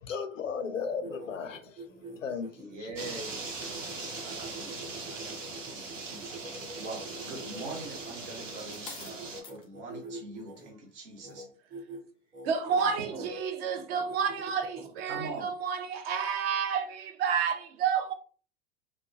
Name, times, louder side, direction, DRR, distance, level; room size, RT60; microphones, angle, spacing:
voice 1, 0.0-1.9 2.2-3.2, left 6 dB, 90° left, 0.5 m, -36 dB
sound 1, 0.8-8.6 9.1-10.7 11.2-11.5 11.7-12.0 12.3-13.3 13.7-15.5, right 2 dB, 20° right, 0.7 m, -45 dB
voice 2, 2.5-11.5 12.8-13.3 15.0-15.5, right 3 dB, 70° right, 1.3 m, -44 dB
sound 2, 3.0-9.4, right 3 dB, 85° right, 0.8 m, -40 dB
sound 3, 8.0-9.7 10.4-10.7, left 6 dB, 15° left, 0.3 m, -48 dB
voice 3, 12.4-18.1, right 6 dB, 50° right, 0.7 m, -30 dB
2.7 x 2.3 x 2.6 m
figure-of-eight pair, 85°, 37 cm